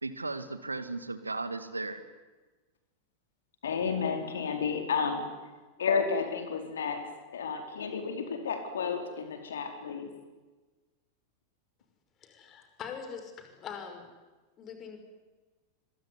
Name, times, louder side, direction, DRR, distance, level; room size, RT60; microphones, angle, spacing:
voice 1, 0.0-2.0, right 3 dB, 80° right, 12 dB, 2.2 m, -36 dB
voice 2, 3.6-5.2 5.8-7.1 7.3-10.1, left 5 dB, 65° left, 6 dB, 4.4 m, -31 dB
voice 3, 12.2-14.1 14.6-15.0, left 7 dB, 30° left, 6 dB, 5.9 m, -42 dB
26.0 x 23.5 x 9.8 m, 1.2 s
figure-of-eight pair, 90°, 0 cm